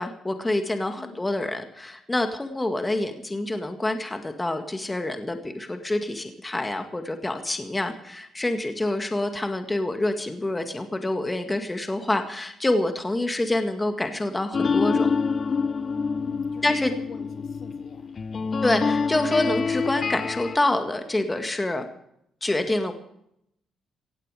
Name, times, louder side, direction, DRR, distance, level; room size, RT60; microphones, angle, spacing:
voice 1, 0.0-15.1 16.6-16.9 18.6-21.9 22.4-22.9, left 1 dB, 15° left, 7 dB, 2.0 m, -27 dB
sound 1, 14.5-20.6, left 5 dB, 40° left, 0.7 m, -26 dB
voice 2, 16.2-18.1 18.3-18.6, left 6 dB, 60° left, 6 dB, 2.5 m, -45 dB
17.0 x 16.0 x 5.0 m, 0.76 s
cardioid pair, 90°, 0 cm